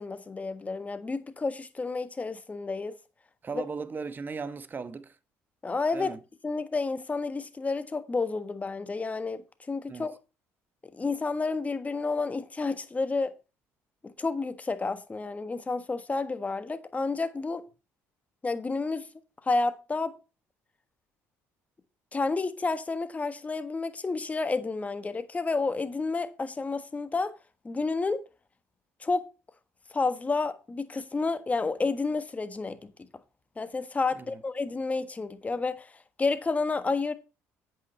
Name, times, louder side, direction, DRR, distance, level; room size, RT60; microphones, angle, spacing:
voice 1, 0.0-2.9 3.5-3.6 5.6-6.1 6.4-10.1 10.9-13.3 14.0-17.6 18.4-19.1 19.4-20.2 22.1-27.3 27.6-28.2 29.0-29.3 29.9-32.9 33.6-35.9 36.2-37.1, left 3 dB, 25° left, 1.4 m, -30 dB
voice 2, 3.4-5.2 5.9-6.2 9.9-10.1 34.1-34.4, right 5 dB, 30° right, 1.2 m, -37 dB
8.3 x 8.2 x 4.4 m
supercardioid pair, 85°, 6 cm